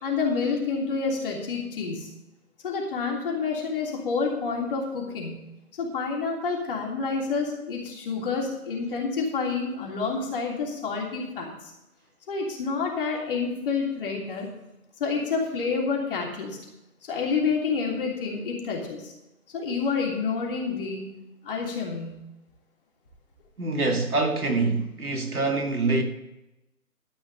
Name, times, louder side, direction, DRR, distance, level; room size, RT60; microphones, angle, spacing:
voice 1, 0.0-2.1 2.6-5.5 5.8-11.7 12.3-14.5 15.0-16.6 17.1-19.1 19.5-21.0 21.4-22.2, left 5 dB, 35° left, 3.2 m, -28 dB
voice 2, 23.6-26.0, right 3 dB, 70° right, 2.4 m, -25 dB
13.0 x 5.6 x 7.8 m
figure-of-eight pair, 150°, 45 cm